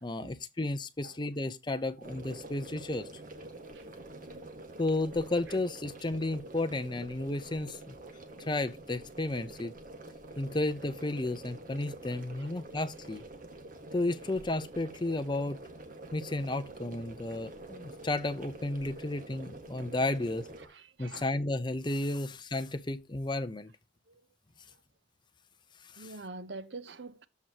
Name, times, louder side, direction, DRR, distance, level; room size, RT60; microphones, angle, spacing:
voice 1, 0.0-3.1 4.8-7.9 8.4-9.7 10.4-13.2 13.9-15.6 16.1-20.5 21.0-23.7 25.9-26.1, left 2 dB, 25° left, 0.7 m, -33 dB
sound 1, 2.0-20.7, right 2 dB, 45° right, 1.7 m, -47 dB
voice 2, 3.7-4.4 12.4-12.5 20.7-21.2 26.0-27.3, right 3 dB, 65° right, 0.8 m, -46 dB
14.0 x 4.7 x 2.9 m
head